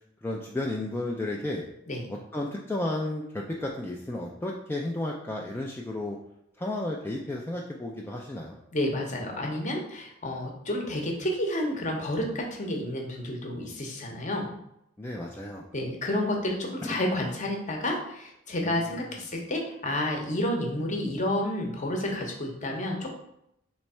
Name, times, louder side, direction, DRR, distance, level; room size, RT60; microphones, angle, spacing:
voice 1, 0.2-1.6 2.1-6.2 6.6-8.6 15.0-15.6 16.8-17.0 18.6-18.8, left 1 dB, 10° left, -1 dB, 0.3 m, -33 dB
voice 2, 8.7-14.5 15.7-23.2, left 1 dB, 40° left, 1 dB, 0.8 m, -30 dB
3.5 x 3.1 x 4.2 m, 0.78 s
head